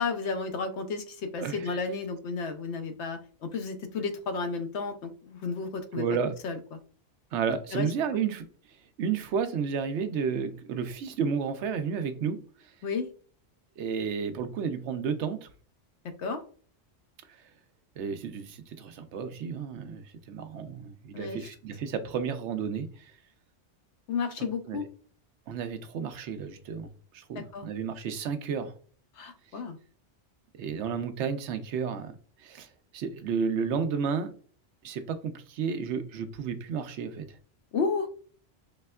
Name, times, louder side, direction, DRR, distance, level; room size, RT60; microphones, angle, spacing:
voice 1, 0.0-6.0 6.4-6.6 7.7-7.9 12.8-13.1 16.2-16.4 21.1-21.5 24.1-24.8 27.3-27.7 29.2-29.8 37.7-38.1, left 4 dB, 65° left, 0.9 m, -32 dB
voice 2, 1.4-1.8 5.9-6.3 7.3-8.4 9.0-12.4 13.8-15.5 18.0-23.1 24.6-24.8 25.5-26.9 27.1-28.7 30.6-32.1 32.4-32.7 32.9-34.3 34.8-37.3, right 6 dB, 70° right, 0.8 m, -32 dB
4.2 x 3.2 x 2.2 m
omnidirectional pair, 1.3 m